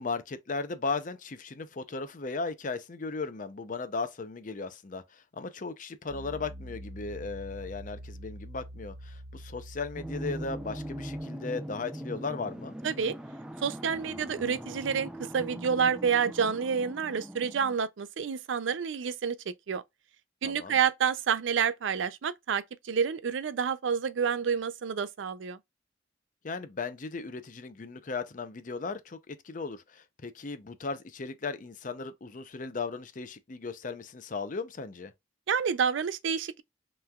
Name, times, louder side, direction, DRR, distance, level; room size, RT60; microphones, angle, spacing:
voice 1, 0.0-12.8 20.4-20.8 26.4-35.1, left 4 dB, 45° left, 0.6 m, -36 dB
Piano, 6.1-11.2, equal, 35° right, 2.6 m, -45 dB
sound 1, 10.0-17.8, equal, 5° right, 0.4 m, -40 dB
voice 2, 12.8-13.2 13.6-19.8 20.4-25.6 35.5-36.6, right 7 dB, 80° right, 0.4 m, -29 dB
5.6 x 3.2 x 2.3 m
head